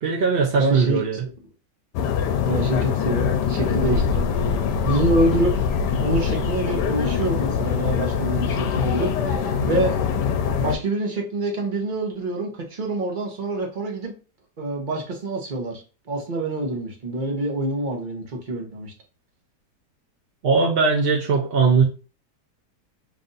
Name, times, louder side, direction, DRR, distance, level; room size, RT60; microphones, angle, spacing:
voice 1, 0.0-1.2 20.4-21.8, right 5 dB, 70° right, 0.5 m, -20 dB
voice 2, 0.5-1.0 2.5-4.6 4.8-5.6 6.0-10.0 10.6-14.1 14.6-15.8 16.1-18.9, right 1 dB, 40° right, 0.8 m, -26 dB
sound 1, 1.9-10.7, left 6 dB, 85° left, 1.2 m, -23 dB
3.3 x 2.5 x 3.8 m
omnidirectional pair, 1.8 m